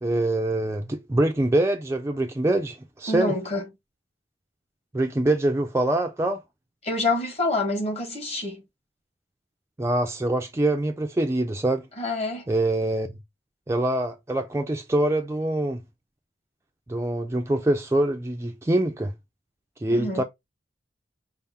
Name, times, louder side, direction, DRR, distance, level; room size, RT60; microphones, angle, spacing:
voice 1, 0.0-3.3 4.9-6.4 9.8-11.9 12.5-13.1 13.7-15.8 16.9-19.1 19.8-20.2, right 1 dB, 15° right, 0.4 m, -24 dB
voice 2, 3.1-3.6 6.8-8.6 12.0-12.4 19.9-20.2, left 2 dB, 35° left, 1.2 m, -27 dB
5.5 x 2.0 x 3.5 m
head